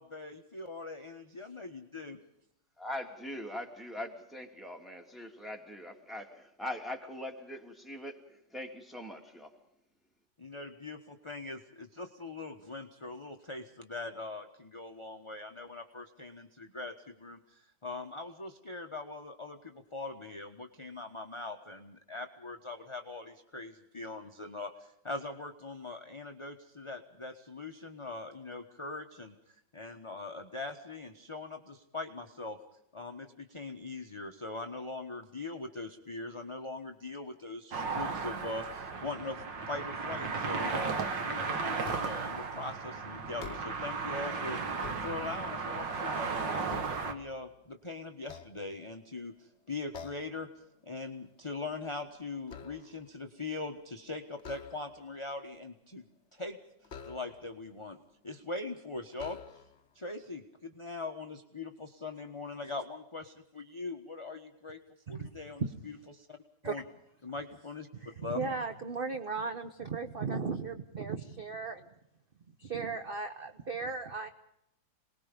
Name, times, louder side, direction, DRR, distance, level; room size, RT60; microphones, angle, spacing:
voice 1, 0.0-2.2 10.4-32.6 32.9-41.0 41.2-50.5 50.8-56.1 56.3-56.6 57.0-58.0 58.2-59.4 59.9-64.8 65.1-66.4 66.6-66.8 67.2-67.9 68.2-68.4, left 3 dB, 20° left, 3 dB, 1.1 m, -41 dB
voice 2, 2.8-9.6, left 1 dB, ahead, 2 dB, 2.8 m, -42 dB
sound 1, 37.7-47.1, right 4 dB, 70° right, 2.4 m, -35 dB
sound 2, 41.8-42.4 43.2-44.0 44.6-45.7 46.2-47.7 48.2-49.2 49.9-50.4 50.8-51.1 51.4-53.1 54.4-55.2 56.8-57.6 58.4-58.5 59.1-59.9, left 6 dB, 40° left, 1.2 m, -48 dB
voice 3, 67.9-71.9 72.6-74.3, right 4 dB, 35° right, 7 dB, 1.0 m, -36 dB
27.5 x 20.5 x 5.3 m, 0.78 s
omnidirectional pair, 2.1 m